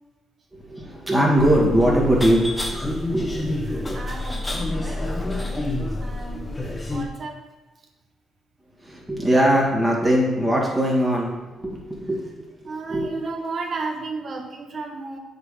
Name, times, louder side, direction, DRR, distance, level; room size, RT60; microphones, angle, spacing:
voice 1, 0.5-4.0 8.8-13.4, right 1 dB, 15° right, -3 dB, 2.2 m, -22 dB
sound 1, 1.4-7.0, left 2 dB, 15° left, 1.1 m, -28 dB
voice 2, 3.5-5.0 6.0-6.5 6.9-7.4 12.6-15.2, right 3 dB, 50° right, 2 dB, 1.3 m, -33 dB
8.1 x 3.9 x 5.0 m, 1.1 s
cardioid pair, 90°, 0 cm